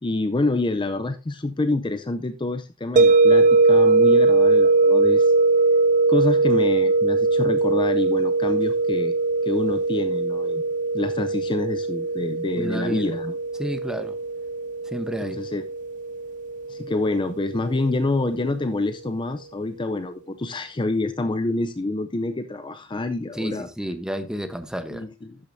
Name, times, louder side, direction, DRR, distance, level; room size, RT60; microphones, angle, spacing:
voice 1, 0.0-5.3 6.1-9.1 9.4-10.6 10.9-13.3 15.2-15.6 16.7-23.7 24.9-25.4, left 2 dB, 25° left, 0.5 m, -27 dB
sound 1, 3.0-17.9, right 3 dB, 40° right, 0.4 m, -21 dB
voice 2, 12.6-13.1 13.6-14.2 14.8-15.4 23.3-25.1, equal, 5° right, 0.9 m, -31 dB
12.0 x 8.7 x 2.7 m
head